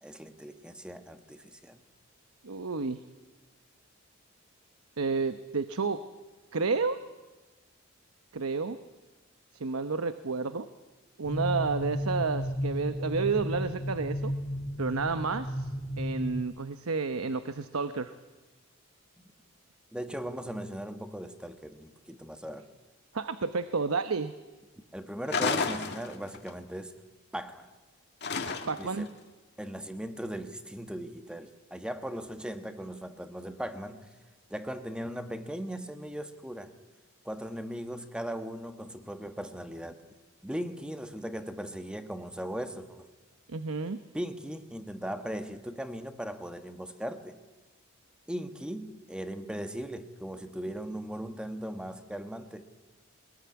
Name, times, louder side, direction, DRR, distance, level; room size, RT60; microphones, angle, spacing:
voice 1, 0.0-1.8 19.9-22.7 24.9-27.0 27.3-27.7 28.8-29.1 29.6-34.1 34.5-36.7 37.2-40.0 40.4-43.1 44.1-47.4 48.3-52.7, equal, 5° right, 9 dB, 1.3 m, -38 dB
voice 2, 2.4-3.0 5.0-6.0 6.5-7.0 8.3-8.8 9.5-10.7 11.2-14.3 14.8-15.7 16.0-18.1 23.1-24.3 28.7-29.1 43.5-44.0, right 4 dB, 90° right, 11 dB, 0.9 m, -30 dB
sound 1, 11.2-16.4, equal, 20° left, 1.9 m, -33 dB
sound 2, 25.3-26.5 28.2-29.0, left 4 dB, 50° left, 1.9 m, -31 dB
22.5 x 20.0 x 9.6 m, 1.2 s
head